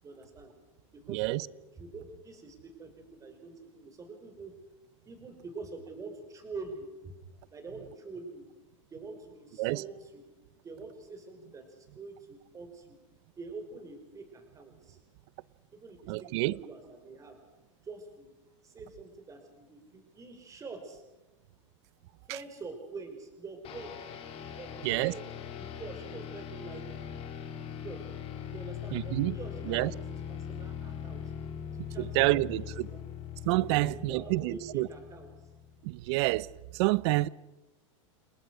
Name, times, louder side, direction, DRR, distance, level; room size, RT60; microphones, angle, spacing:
voice 1, 0.0-0.5 0.9-1.4 1.8-4.5 5.1-7.2 7.5-8.4 8.9-10.1 10.6-13.0 13.4-15.0 15.7-17.4 17.8-18.3 18.6-21.0 22.3-23.9 24.5-25.2 25.6-27.1 27.6-28.0 28.5-30.0 30.3-31.2 31.7-33.0 33.7-35.3, right 3 dB, 20° right, 5.9 m, -45 dB
voice 2, 1.1-1.5 9.6-9.8 16.1-16.6 24.8-25.1 28.9-29.4 29.6-29.9 31.8-32.9 33.4-34.9 35.8-36.5 36.7-37.3, right 20 dB, 55° right, 0.8 m, -28 dB
sound 1, 23.6-35.9, left 8 dB, 35° left, 3.9 m, -41 dB
29.5 x 19.5 x 6.4 m
supercardioid pair, 135°, 17 cm